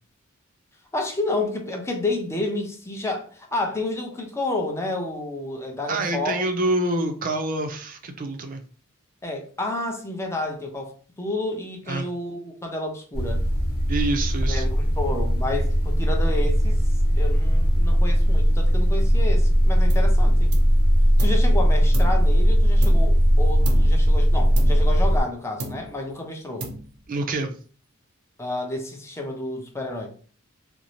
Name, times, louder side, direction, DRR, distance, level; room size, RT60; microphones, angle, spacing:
voice 1, 0.9-6.4 6.8-6.9 9.2-10.9 11.2-13.4 14.5-16.8 17.1-20.5 21.2-26.7 28.4-30.1, left 2 dB, 15° left, 0.5 m, -30 dB
voice 2, 5.9-8.6 11.9-12.1 13.9-14.7 27.1-27.5, right 2 dB, 40° right, 0.4 m, -26 dB
sound 1, 13.1-25.2, equal, 75° left, 0.9 m, -19 dB
sound 2, 19.9-20.2 20.5-21.5 21.9-23.3 23.6-24.1 24.6-25.3 25.6-26.1 26.6-27.2, right 2 dB, 85° right, 0.6 m, -36 dB
2.5 x 2.0 x 2.9 m
head